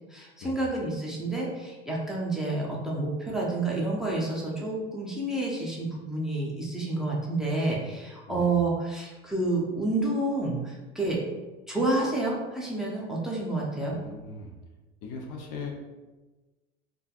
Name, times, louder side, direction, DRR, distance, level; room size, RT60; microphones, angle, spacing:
voice 1, 0.1-11.2 11.7-14.0, right 2 dB, ahead, -4 dB, 0.6 m, -29 dB
voice 2, 13.9-14.5 15.0-15.7, left 4 dB, 50° left, 1 dB, 0.6 m, -39 dB
3.2 x 2.3 x 2.3 m, 1.2 s
hypercardioid pair, 75°, 32 cm